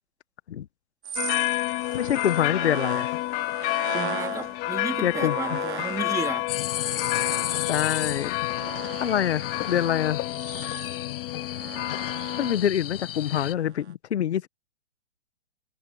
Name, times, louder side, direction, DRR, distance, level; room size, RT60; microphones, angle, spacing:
sound 1, 1.0-6.2 6.4-13.6 13.9-14.0, right 9 dB, 75° right, 3.1 m, -39 dB
sound 2, 1.2-12.5, left 21 dB, 30° left, 2.9 m, -30 dB
voice 1, 1.9-3.2 5.0-5.6 7.7-8.3 9.0-10.2 12.4-14.5, left 10 dB, 75° left, 1.3 m, -26 dB
voice 2, 3.9-6.5, right 5 dB, 10° right, 2.2 m, -33 dB
sound 3, 6.5-13.5, left 13 dB, 55° left, 1.2 m, -33 dB
hypercardioid pair, 155°, 34 cm